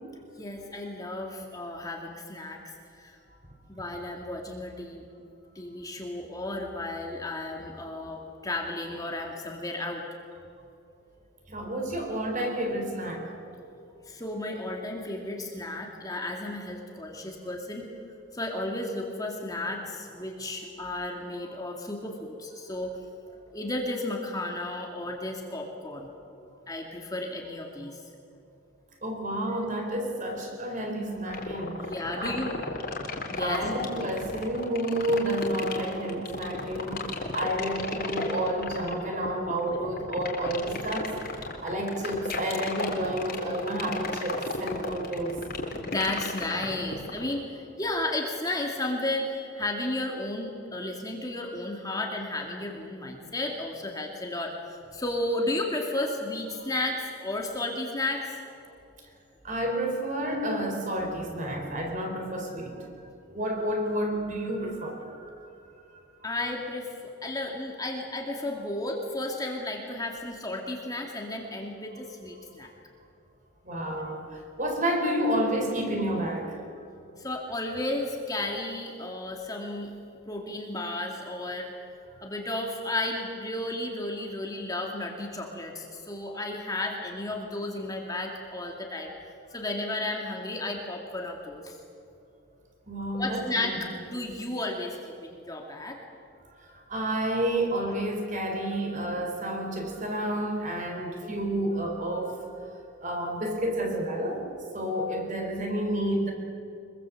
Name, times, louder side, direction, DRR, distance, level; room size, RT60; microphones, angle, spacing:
voice 1, 0.4-3.2 3.7-5.0 5.6-10.0 14.1-17.9 18.3-22.9 23.5-26.1 26.7-28.0 31.9-32.5 33.3-33.6 45.8-58.3 66.2-72.7 77.2-79.9 80.3-81.7 82.2-89.1 89.5-91.8 93.1-95.0 95.2-96.0, left 2 dB, 15° left, 0 dB, 2.3 m, -33 dB
voice 2, 11.5-13.3 29.0-32.4 33.4-41.2 41.6-45.3 59.4-62.9 63.3-65.5 73.6-76.6 92.9-93.8 96.6-102.4 103.0-104.5 104.7-106.3, right 1 dB, 35° right, 3 dB, 4.6 m, -30 dB
sound 1, 31.3-47.3, left 3 dB, 45° left, 3.6 m, -34 dB
25.0 x 23.0 x 7.7 m, 2.6 s
head